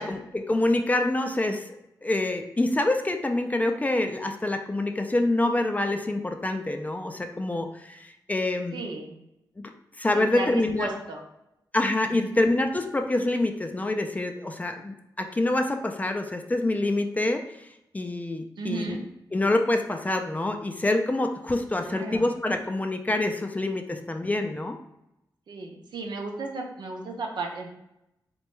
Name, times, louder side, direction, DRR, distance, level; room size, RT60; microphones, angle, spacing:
voice 1, 0.0-1.8 2.0-8.8 9.6-9.7 10.0-10.9 11.7-17.7 17.9-19.0 19.3-24.8, left 2 dB, 20° left, 5 dB, 0.3 m, -26 dB
voice 2, 8.7-9.2 10.1-11.2 12.2-12.4 18.6-19.0 21.8-22.3 25.5-27.7, right 3 dB, 70° right, 1 dB, 0.6 m, -34 dB
3.3 x 2.2 x 3.0 m, 0.87 s
cardioid pair, 70°, 8 cm